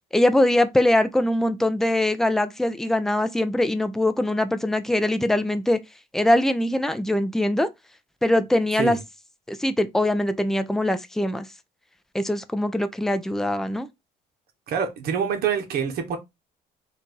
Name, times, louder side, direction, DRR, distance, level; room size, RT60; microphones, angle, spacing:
voice 1, 0.1-5.8 6.1-7.7 8.2-9.0 9.5-11.5 12.1-13.9, left 1 dB, ahead, 0.5 m, -22 dB
voice 2, 14.7-16.2, right 7 dB, 65° right, 1.3 m, -26 dB
4.4 x 2.6 x 4.6 m
cardioid pair, 110°, 17 cm